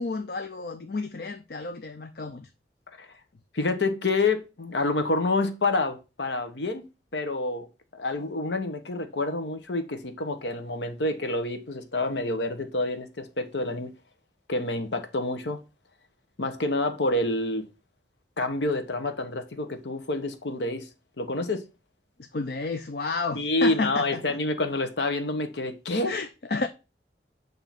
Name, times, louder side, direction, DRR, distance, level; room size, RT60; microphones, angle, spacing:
voice 1, 0.0-2.5 22.3-24.2 26.1-26.7, left 3 dB, 60° left, 0.5 m, -31 dB
voice 2, 3.5-6.9 7.1-7.7 7.9-13.9 14.5-15.6 16.4-17.6 18.4-20.9 21.2-21.6 23.3-26.1, left 2 dB, 85° left, 0.9 m, -28 dB
7.1 x 2.7 x 5.7 m
head